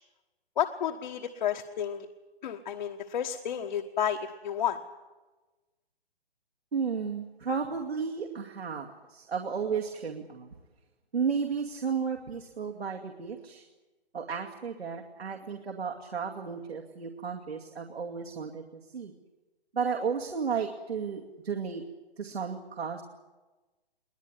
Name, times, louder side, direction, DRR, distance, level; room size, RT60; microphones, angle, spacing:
voice 1, 0.6-2.1 2.4-4.8, left 9 dB, 50° left, 5 dB, 1.4 m, -31 dB
voice 2, 6.7-10.5 11.1-13.6 14.1-19.1 19.7-21.8 22.2-23.0, right 6 dB, 85° right, 1 dB, 2.5 m, -33 dB
22.5 x 18.5 x 9.8 m, 1.2 s
hypercardioid pair, 145°, 31 cm